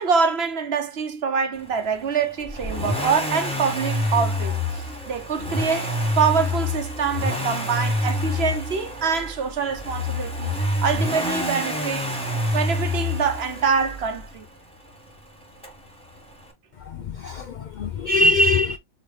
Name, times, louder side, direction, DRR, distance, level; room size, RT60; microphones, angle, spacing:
voice 1, 0.0-10.5 10.8-12.1 12.5-14.5, right 5 dB, 55° right, 1.1 m, -25 dB
Accelerating revving vroom, 2.4-14.3 15.6-15.7, left 1 dB, 5° left, 1.3 m, -27 dB
voice 2, 16.8-18.8, left 2 dB, 65° left, 0.4 m, -22 dB
4.3 x 3.8 x 3.2 m
omnidirectional pair, 1.3 m